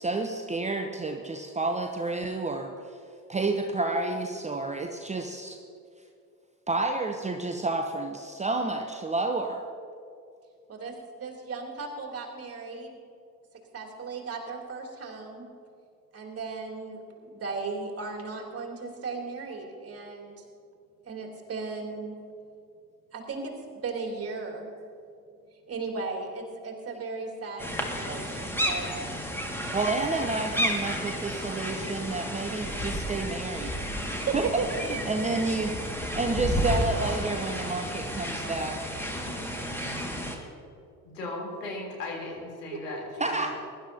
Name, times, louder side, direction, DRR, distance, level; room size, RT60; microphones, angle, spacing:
voice 1, 0.0-3.0 3.3-5.6 6.7-9.6 29.7-33.8 34.3-34.5 34.8-35.8 36.1-38.8 43.2-43.5, right 3 dB, 15° right, 4 dB, 0.9 m, -30 dB
voice 2, 10.7-13.0 13.7-15.5 16.1-20.5 21.0-22.2 23.1-23.5 23.8-24.7 25.7-28.9 34.2-34.7 42.7-42.8, right 4 dB, 30° right, 0 dB, 3.0 m, -36 dB
sound 1, 27.6-40.4, equal, 5° left, 1.9 m, -32 dB
voice 3, 41.0-43.5, left 2 dB, 75° left, -2 dB, 3.6 m, -37 dB
22.5 x 12.0 x 2.8 m, 2.4 s
figure-of-eight pair, 60°, 48 cm